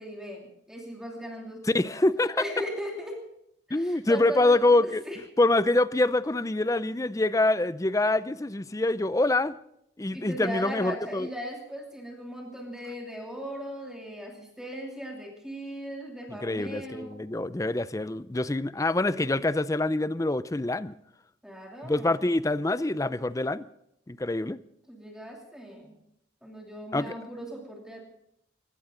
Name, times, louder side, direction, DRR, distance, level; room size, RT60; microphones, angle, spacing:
voice 1, 0.0-1.8 2.4-3.2 3.7-5.2 10.1-17.2 21.4-22.3 24.9-25.9 26.4-28.0, equal, 5° right, 0 dB, 2.7 m, -38 dB
voice 2, 1.7-2.4 3.7-5.0 5.4-9.6 10.0-11.3 16.3-21.0 21.8-23.6 24.1-24.6 26.9-27.1, left 2 dB, 15° left, 16 dB, 0.5 m, -25 dB
20.0 x 17.0 x 3.8 m, 0.79 s
head